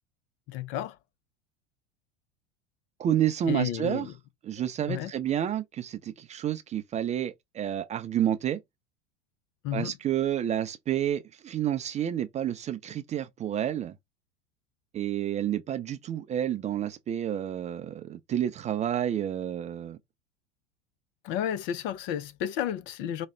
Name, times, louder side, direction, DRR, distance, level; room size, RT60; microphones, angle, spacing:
voice 1, 0.5-1.0 3.4-4.1 4.9-5.1 9.6-10.0 21.2-23.3, left 10 dB, 35° left, 0.5 m, -32 dB
voice 2, 3.0-4.1 4.4-8.6 9.7-13.9 14.9-20.0, right 10 dB, 20° right, 0.4 m, -29 dB
4.9 x 2.0 x 3.3 m
figure-of-eight pair, 80°, 34 cm